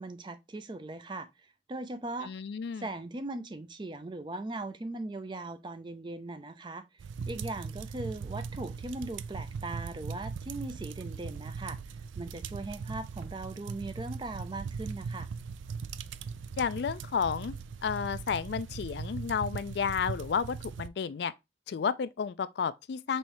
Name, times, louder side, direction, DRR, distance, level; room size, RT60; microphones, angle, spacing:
voice 1, 0.0-2.3 2.7-15.3, right 2 dB, 25° right, 0.4 m, -39 dB
voice 2, 2.2-2.9 16.6-17.5 17.8-21.3 21.7-23.2, left 6 dB, 65° left, 0.3 m, -32 dB
sound 1, 7.0-20.9, right 5 dB, 90° right, 0.4 m, -39 dB
5.4 x 3.2 x 2.9 m
head